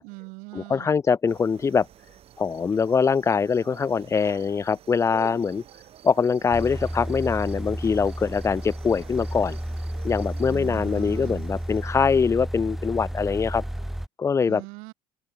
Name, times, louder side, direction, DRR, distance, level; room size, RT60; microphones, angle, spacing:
voice 1, 0.0-0.9 10.5-11.5 14.5-14.9, right 31 dB, 75° right, 7.0 m, -41 dB
voice 2, 0.5-1.9 2.4-5.6 6.0-9.6 10.0-13.6 14.2-14.6, left 5 dB, 20° left, 0.6 m, -23 dB
sound 1, 1.3-11.9, right 11 dB, 50° right, 6.6 m, -48 dB
sound 2, 6.5-14.1, equal, ahead, 4.3 m, -32 dB
open air
supercardioid pair, 100°, 13 cm